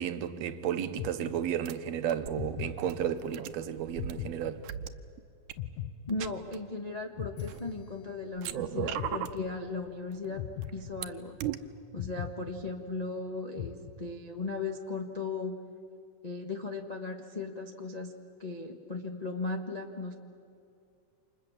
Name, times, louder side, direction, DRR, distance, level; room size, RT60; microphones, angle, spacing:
voice 1, 0.0-4.6, right 9 dB, 70° right, 2.0 m, -33 dB
sound 1, 1.0-1.8 2.4-3.4 4.0-5.1 5.6-6.8 7.2-8.4 8.8-9.8 10.4-11.5 12.0-13.2 13.6-14.4, left 10 dB, 85° left, 2.4 m, -41 dB
sound 2, 1.7-1.8 2.1-4.1 4.6-4.9 5.5-5.6 6.1-6.6 7.3-7.9 8.3-9.4 10.1-11.0 11.4-11.6, right 11 dB, 85° right, 2.4 m, -37 dB
voice 2, 6.1-10.4 10.7-11.4 11.9-15.6 16.2-18.1 18.4-20.1, left 3 dB, 40° left, 0.5 m, -37 dB
29.5 x 27.0 x 7.3 m
omnidirectional pair, 3.5 m